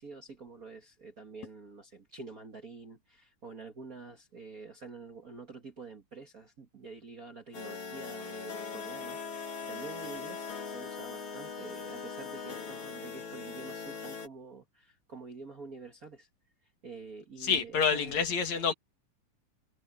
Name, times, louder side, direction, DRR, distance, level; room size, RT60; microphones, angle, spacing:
voice 1, 0.0-16.3 16.6-18.2, right 4 dB, 35° right, 1.6 m, -47 dB
sound 1, 7.5-14.3, left 5 dB, 45° left, 3.4 m, -40 dB
voice 2, 17.4-18.7, left 6 dB, 65° left, 3.3 m, -28 dB
omnidirectional pair, 3.5 m